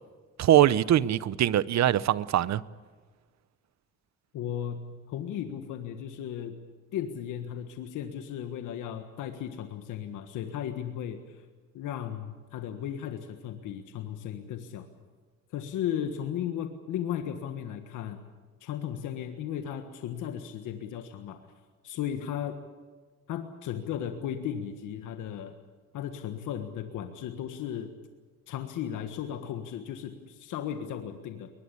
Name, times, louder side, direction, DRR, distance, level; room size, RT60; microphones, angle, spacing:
voice 1, 0.4-2.6, right 12 dB, 65° right, 0.8 m, -22 dB
voice 2, 4.3-6.6 6.9-11.4 11.7-14.9 15.5-18.2 18.6-21.4 21.8-22.6 23.3-25.5 25.9-27.9 28.5-31.5, left 9 dB, 85° left, 1.6 m, -35 dB
22.5 x 20.5 x 8.4 m
cardioid pair, 90°, 30 cm